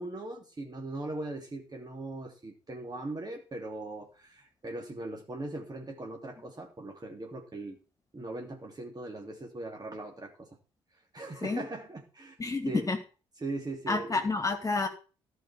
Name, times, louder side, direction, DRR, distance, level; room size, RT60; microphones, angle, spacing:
voice 1, 0.0-7.8 8.1-10.5 11.1-12.4 12.6-12.9 13.4-14.3, right 2 dB, 30° right, 2 dB, 2.9 m, -39 dB
voice 2, 12.4-13.0 13.9-14.9, left 3 dB, 25° left, 6 dB, 2.7 m, -29 dB
16.0 x 5.7 x 7.1 m, 0.34 s
figure-of-eight pair, 40°, 13 cm